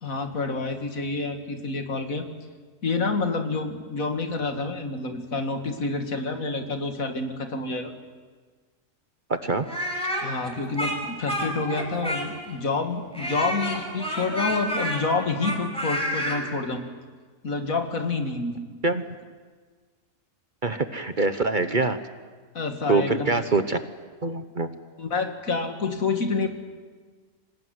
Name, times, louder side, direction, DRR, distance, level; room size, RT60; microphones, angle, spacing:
voice 1, 0.0-2.3 2.8-7.9 10.2-16.8 17.4-18.6 22.5-23.4 25.0-26.5, left 3 dB, 75° left, 6 dB, 2.6 m, -28 dB
Speech, 9.6-12.5 13.1-16.4, equal, 5° left, 5.2 m, -29 dB
voice 2, 20.6-22.0 22.9-23.8 24.2-24.7, right 3 dB, 40° right, 10 dB, 1.1 m, -24 dB
25.5 x 20.0 x 9.6 m, 1.5 s
omnidirectional pair, 1.5 m